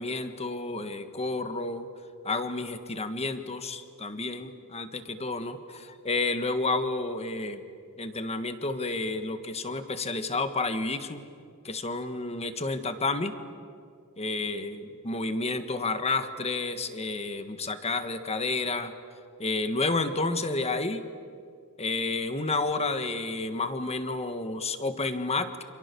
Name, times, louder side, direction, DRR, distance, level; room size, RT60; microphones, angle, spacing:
voice 1, 0.0-1.9 2.2-7.6 8.0-11.2 11.6-13.3 14.2-18.9 19.4-21.0 21.8-25.6, left 3 dB, 30° left, 9 dB, 1.6 m, -30 dB
29.0 x 28.0 x 7.0 m, 2.4 s
head